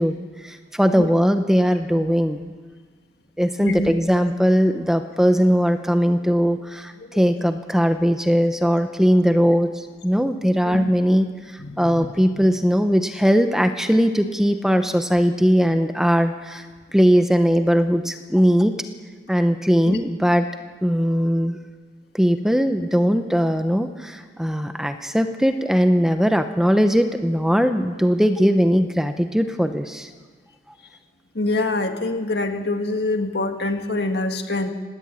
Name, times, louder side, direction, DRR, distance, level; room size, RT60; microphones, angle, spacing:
voice 1, 0.0-2.5 3.4-16.7 16.9-18.8 19.3-20.5 20.8-21.6 22.1-30.1, equal, 5° right, 7 dB, 0.9 m, -19 dB
voice 2, 3.6-3.9 7.1-7.2 10.6-10.9 11.6-12.1 12.4-12.5 19.9-20.0 31.3-34.7, left 2 dB, 70° left, 5 dB, 2.0 m, -25 dB
19.0 x 18.5 x 8.5 m, 1.5 s
head